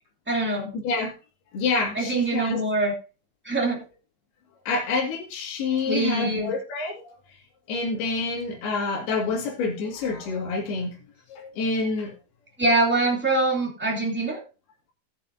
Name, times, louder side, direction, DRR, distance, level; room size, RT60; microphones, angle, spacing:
voice 1, 0.3-0.7 1.9-2.9 3.4-3.8 5.9-6.5 12.6-14.4, right 2 dB, 5° right, -1 dB, 1.9 m, -24 dB
voice 2, 1.5-2.6 4.7-7.1 7.7-11.0 11.3-12.1, left 4 dB, 70° left, 0 dB, 4.2 m, -27 dB
18.0 x 7.3 x 2.7 m, 0.33 s
omnidirectional pair, 4.7 m